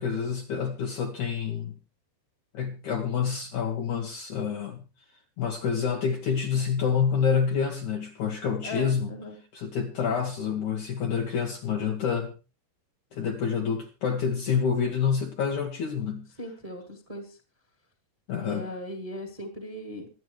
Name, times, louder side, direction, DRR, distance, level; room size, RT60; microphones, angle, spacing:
voice 1, 0.0-1.8 2.5-4.8 5.4-9.1 9.5-12.3 13.1-16.3 18.3-18.7, left 6 dB, 65° left, 3 dB, 2.1 m, -28 dB
voice 2, 8.6-9.4 16.4-17.4 18.4-20.1, left 1 dB, 10° right, 4 dB, 2.0 m, -38 dB
25.0 x 9.4 x 3.2 m, 0.30 s
omnidirectional pair, 4.7 m